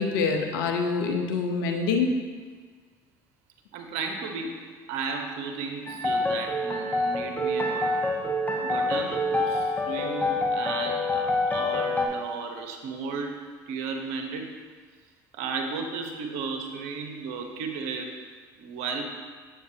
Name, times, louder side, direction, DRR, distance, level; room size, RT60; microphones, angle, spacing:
voice 1, 0.0-2.2, left 4 dB, 85° left, 4 dB, 0.8 m, -25 dB
voice 2, 3.7-4.6 4.9-8.0 8.6-13.4 13.7-14.5 15.3-18.1 18.6-19.1, right 4 dB, 75° right, 3 dB, 0.9 m, -34 dB
sound 1, 5.9-12.1, left 2 dB, 15° left, 1.2 m, -26 dB
8.1 x 7.6 x 2.8 m, 1.5 s
hypercardioid pair, 70°, 10 cm